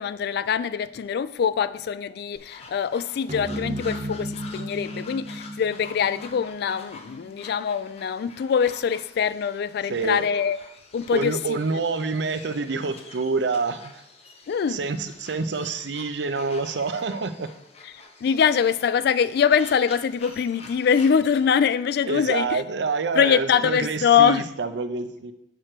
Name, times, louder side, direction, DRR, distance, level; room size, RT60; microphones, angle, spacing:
voice 1, 0.0-10.6 10.9-11.6 14.5-14.8 18.2-22.6 23.2-24.5, left 7 dB, 60° left, 0.3 m, -23 dB
sound 1, 2.4-21.5, left 3 dB, 35° left, 0.8 m, -47 dB
sound 2, 3.3-7.9, right 1 dB, 40° right, 0.9 m, -35 dB
voice 2, 9.9-10.2 11.1-13.9 14.7-17.5 22.1-25.3, right 4 dB, 70° right, 0.5 m, -27 dB
6.1 x 4.4 x 6.5 m
head